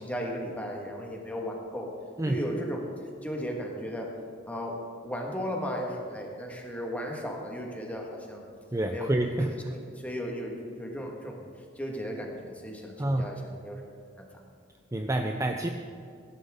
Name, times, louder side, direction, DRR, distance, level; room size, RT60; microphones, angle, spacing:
voice 1, 0.0-1.9 2.2-2.8 3.2-4.1 4.5-8.4 8.9-9.1 9.4-11.4 11.8-13.8 14.2-14.3, equal, 10° left, 0 dB, 1.6 m, -35 dB
voice 2, 8.7-9.8 13.0-13.4 14.9-15.7, right 1 dB, 15° right, 4 dB, 0.5 m, -28 dB
17.0 x 11.0 x 3.7 m, 2.3 s
head